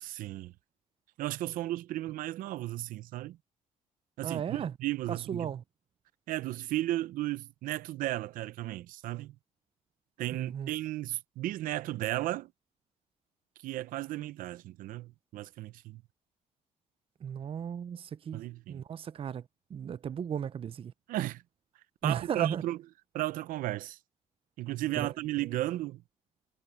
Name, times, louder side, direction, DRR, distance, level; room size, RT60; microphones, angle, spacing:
voice 1, 0.0-0.5 1.2-3.4 4.2-5.5 6.3-9.4 10.2-12.5 13.6-16.0 18.3-18.8 21.1-21.4 22.0-22.8 23.1-24.0 24.6-26.0, right 16 dB, 85° right, 0.6 m, -34 dB
voice 2, 4.2-4.7 5.1-5.6 10.3-10.7 17.2-18.4 18.7-19.4 19.7-20.9 22.0-22.6 25.0-25.1, right 8 dB, 40° right, 0.5 m, -35 dB
cardioid pair, 85°, 14 cm